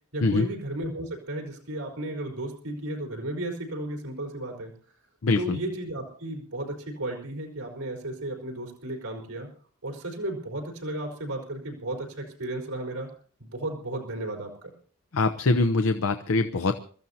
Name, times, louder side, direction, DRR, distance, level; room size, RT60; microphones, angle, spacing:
voice 1, 0.1-4.7 5.4-9.5 9.8-13.1 13.4-14.5, right 1 dB, 80° right, -1 dB, 4.3 m, -34 dB
voice 2, 5.2-5.6 15.1-16.7, left 3 dB, 65° left, 9 dB, 0.7 m, -23 dB
25.5 x 14.0 x 2.8 m, 0.43 s
head